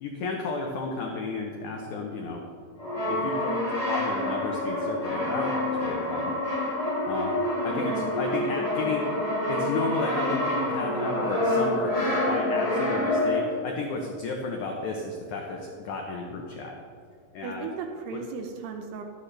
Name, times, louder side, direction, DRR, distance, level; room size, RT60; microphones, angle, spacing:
voice 1, 0.0-2.4 3.1-6.3 7.1-9.1 9.5-11.9 12.3-16.8 17.3-17.7 18.1-18.2, left 3 dB, 75° left, 1 dB, 1.8 m, -33 dB
Brass instrument, 2.8-13.6, left 1 dB, 15° left, 1.4 m, -27 dB
voice 2, 7.7-8.1 17.4-19.0, right 6 dB, 80° right, 4 dB, 2.8 m, -36 dB
13.0 x 11.0 x 3.3 m, 2.3 s
omnidirectional pair, 4.6 m